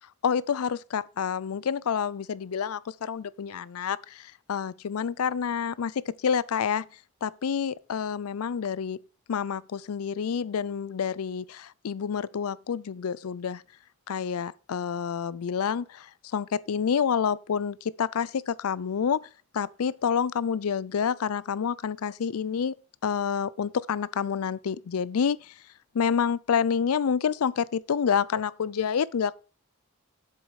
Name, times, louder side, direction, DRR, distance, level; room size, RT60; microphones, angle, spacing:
voice 1, 0.2-6.9 7.2-9.0 9.3-13.6 14.1-19.3 19.5-22.7 23.0-25.5 25.9-29.3, left 7 dB, 85° left, 0.4 m, -28 dB
7.7 x 7.0 x 4.7 m
head